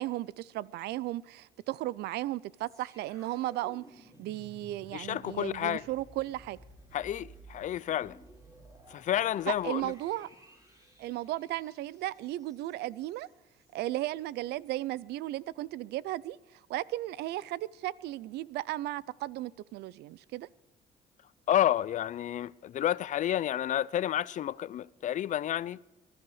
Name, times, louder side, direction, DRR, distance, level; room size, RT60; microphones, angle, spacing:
voice 1, 0.0-6.6 9.5-10.3 11.0-13.3 13.7-20.5, right 16 dB, 80° right, 0.5 m, -35 dB
sound 1, 2.7-13.8 14.2-14.3, right 2 dB, 20° right, 5.6 m, -56 dB
voice 2, 4.9-5.8 6.9-8.2 8.9-9.9 21.5-25.8, left 11 dB, 50° left, 0.4 m, -30 dB
22.0 x 12.0 x 4.9 m
cardioid pair, 110°, 17 cm